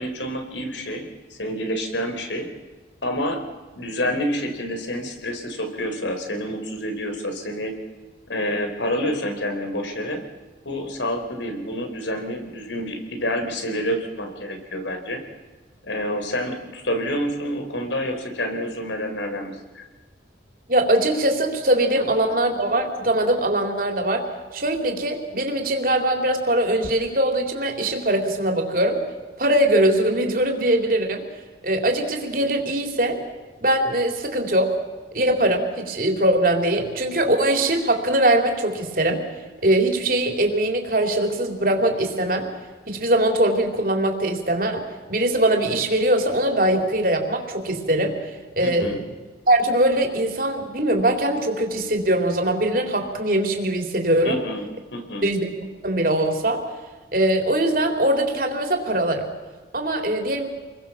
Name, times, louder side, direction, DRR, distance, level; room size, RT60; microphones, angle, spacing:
voice 1, 0.0-2.5 3.0-3.4 3.8-7.7 8.3-10.2 10.6-15.2 15.8-19.9 48.6-49.0 54.2-55.3, equal, 80° left, 5 dB, 4.3 m, -28 dB
voice 2, 20.7-24.3 24.5-29.1 29.4-31.2 31.6-33.2 33.6-34.8 35.1-39.2 39.6-42.5 42.9-44.8 45.1-48.2 48.6-48.9 49.5-54.4 55.2-55.5 55.8-56.6 57.1-59.3 59.7-60.5, right 1 dB, 50° right, 3 dB, 3.7 m, -21 dB
28.0 x 22.0 x 7.4 m, 1.3 s
head